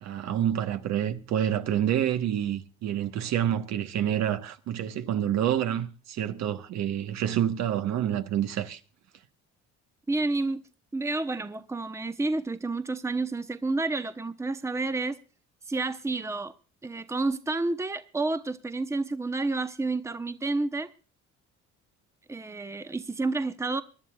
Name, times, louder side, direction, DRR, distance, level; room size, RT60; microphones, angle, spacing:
voice 1, 0.0-8.8, right 10 dB, 65° right, 1.2 m, -28 dB
voice 2, 10.1-10.6 10.9-15.2 15.7-16.5 16.8-20.9 22.3-23.8, right 3 dB, 10° right, 0.8 m, -30 dB
24.5 x 11.0 x 2.4 m
supercardioid pair, 80°, 29 cm